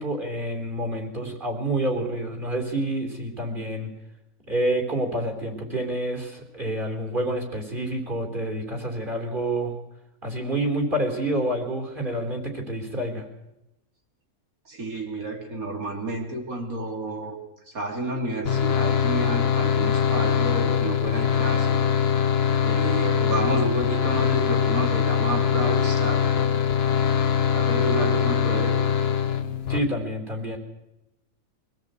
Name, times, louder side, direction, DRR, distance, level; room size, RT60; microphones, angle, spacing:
voice 1, 0.0-3.9 4.5-9.7 10.2-13.2 29.7-30.6, right 1 dB, 35° right, 3 dB, 3.8 m, -28 dB
voice 2, 14.7-17.4 17.7-22.3 22.6-26.3 27.5-28.8, right 2 dB, 85° right, 2 dB, 3.5 m, -30 dB
sound 1, 18.5-29.8, left 7 dB, 50° left, 1.2 m, -22 dB
24.0 x 16.5 x 8.2 m, 0.91 s
omnidirectional pair, 1.5 m